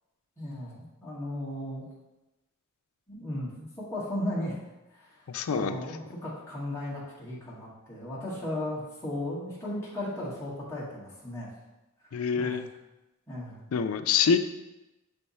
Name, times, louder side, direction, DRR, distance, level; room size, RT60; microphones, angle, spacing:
voice 1, 0.4-1.8 3.1-4.5 4.9-11.5 12.0-12.6 13.3-13.6, left 1 dB, 15° left, -9 dB, 1.7 m, -36 dB
voice 2, 5.3-5.8 12.1-12.7 13.7-14.4, left 6 dB, 75° left, 10 dB, 0.4 m, -26 dB
6.9 x 3.5 x 4.1 m, 1.0 s
head